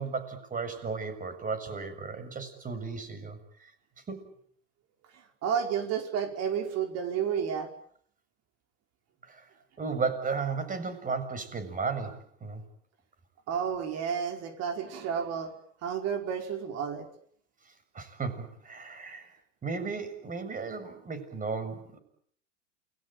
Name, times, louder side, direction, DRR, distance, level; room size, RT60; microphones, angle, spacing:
voice 1, 0.0-3.4 4.1-4.3 9.3-9.5 9.8-12.6 17.9-19.3 19.6-22.0, right 4 dB, 20° right, 9 dB, 6.9 m, -34 dB
voice 2, 5.4-7.7 13.5-15.5 15.8-17.1, right 7 dB, 40° right, 5 dB, 5.0 m, -31 dB
29.0 x 20.0 x 9.1 m, 0.63 s
hypercardioid pair, 100°, 38 cm